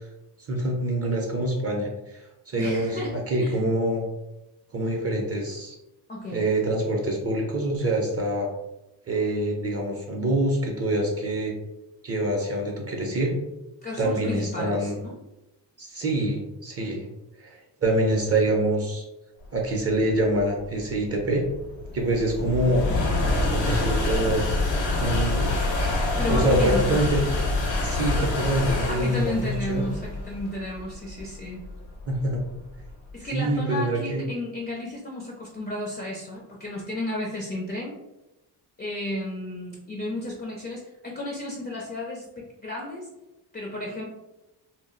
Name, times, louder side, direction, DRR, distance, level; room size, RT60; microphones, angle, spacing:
voice 1, 0.5-4.0 4.7-5.8 6.3-8.5 9.1-11.5 12.0-13.4 14.0-15.0 15.8-17.0 17.4-19.0 19.5-21.4 21.9-22.8 23.5-24.4 24.9-25.7 26.3-27.2 27.8-29.9 32.1-32.4 33.3-34.2, right 1 dB, 35° right, 0 dB, 0.5 m, -25 dB
voice 2, 2.6-3.6 6.1-6.5 13.8-15.2 26.2-27.1 28.9-31.6 33.1-38.0 38.8-43.1 43.5-44.0, left 1 dB, 25° left, -2 dB, 0.4 m, -33 dB
sound 1, 19.8-33.1, left 2 dB, 85° left, 0.8 m, -27 dB
2.2 x 2.0 x 3.7 m, 0.95 s
cardioid pair, 130°, 43 cm